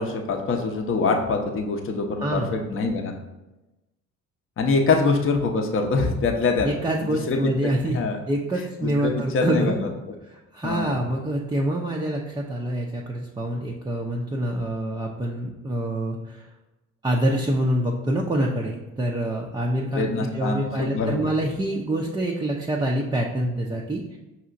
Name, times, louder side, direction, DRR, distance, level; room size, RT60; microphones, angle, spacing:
voice 1, 0.0-3.1 4.6-6.7 7.0-7.5 7.9-8.2 8.6-9.9 10.6-11.0 19.9-21.3, left 4 dB, 35° left, 3 dB, 0.7 m, -24 dB
voice 2, 2.2-2.5 6.6-8.0 8.3-9.8 10.3-16.5 17.0-24.2, right 1 dB, 10° right, -1 dB, 0.4 m, -26 dB
5.4 x 2.8 x 2.5 m, 1.0 s
hypercardioid pair, 50°, 39 cm